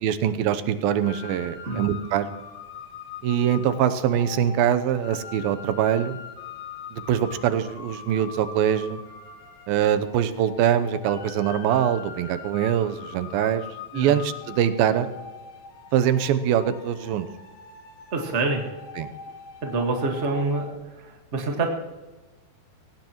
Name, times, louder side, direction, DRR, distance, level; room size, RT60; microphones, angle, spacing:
voice 1, 0.0-2.3 3.2-6.2 6.9-9.0 9.7-13.6 13.9-15.1 15.9-17.3 19.0-19.1, right 9 dB, 90° right, 11 dB, 2.7 m, -23 dB
sound 1, 1.0-20.8, left 5 dB, 60° left, 1.3 m, -42 dB
voice 2, 18.1-18.6 19.6-21.7, right 3 dB, 35° right, 1 dB, 1.0 m, -26 dB
22.0 x 18.0 x 3.1 m, 1.2 s
omnidirectional pair, 4.1 m